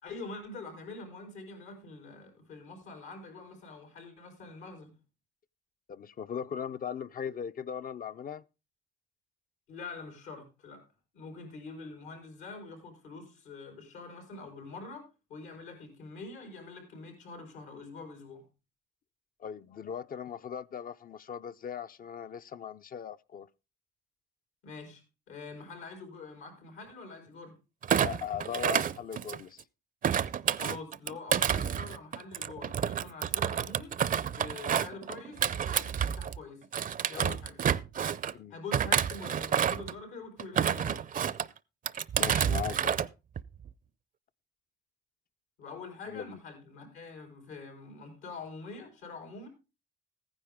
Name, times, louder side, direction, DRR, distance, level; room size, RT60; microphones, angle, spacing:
voice 1, 0.0-4.9 9.7-10.8 11.1-18.4 24.6-27.6 30.5-33.9 34.3-36.7 37.1-37.6 38.5-41.0 45.6-49.5, left 3 dB, 90° left, 4.7 m, -45 dB
voice 2, 5.9-8.4 19.4-23.5 28.0-29.6 37.2-37.4 38.3-38.6 42.2-43.0 46.1-46.4, left 8 dB, 45° left, 0.5 m, -39 dB
Thump thud, 27.8-29.6 30.0-36.4 36.7-38.3 38.7-39.9 40.4-41.5 41.9-43.1 43.4-43.7, right 8 dB, 45° right, 0.5 m, -29 dB
14.5 x 9.9 x 3.6 m
cardioid pair, 90°, 20 cm